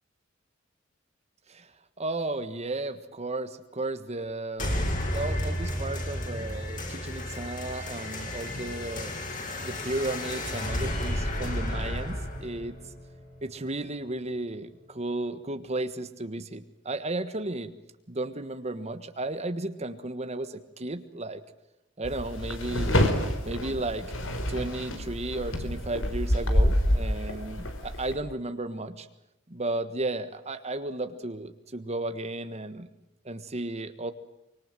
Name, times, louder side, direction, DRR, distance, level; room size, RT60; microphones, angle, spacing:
voice 1, 1.5-9.1 9.6-12.8 13.4-17.7 18.1-21.4 22.0-23.0 23.4-24.1 24.5-29.1 29.5-32.9 33.2-34.1, right 2 dB, 35° right, 9 dB, 1.5 m, -34 dB
sound 1, 4.6-13.6, left 1 dB, 45° left, 7.4 m, -32 dB
sound 2, 22.0-28.2, left 1 dB, 85° left, 4.6 m, -27 dB
25.5 x 25.0 x 7.6 m, 0.92 s
head